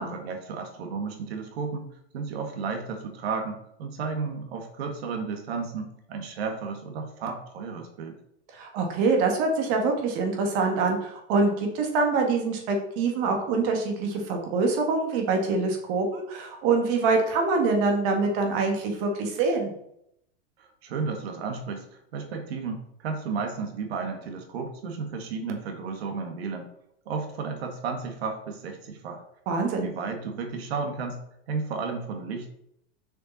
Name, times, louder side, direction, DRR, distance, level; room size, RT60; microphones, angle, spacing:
voice 1, 0.1-8.2 20.6-26.7 27.0-29.2 29.8-31.2 31.5-32.5, right 5 dB, 70° right, 5 dB, 1.7 m, -33 dB
voice 2, 8.5-19.7 29.5-29.9, right 3 dB, 45° right, 3 dB, 1.9 m, -25 dB
6.7 x 5.7 x 4.1 m, 0.75 s
supercardioid pair, 155°, 32 cm